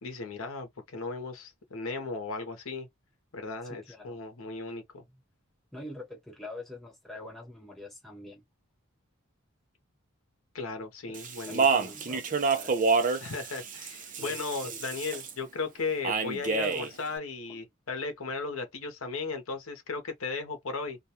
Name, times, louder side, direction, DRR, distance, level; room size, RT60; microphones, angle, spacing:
voice 1, 0.0-2.9 3.3-5.0 10.5-11.9 13.2-21.0, left 4 dB, 70° left, 0.8 m, -36 dB
voice 2, 3.6-4.2 5.1-5.2 5.7-8.4 11.1-11.2 11.5-12.8 14.2-14.8 16.5-16.9 17.5-17.6, left 2 dB, ahead, 0.9 m, -45 dB
Speech, 11.1-15.3 16.0-16.9, right 5 dB, 40° right, 0.5 m, -28 dB
2.4 x 2.2 x 2.8 m
head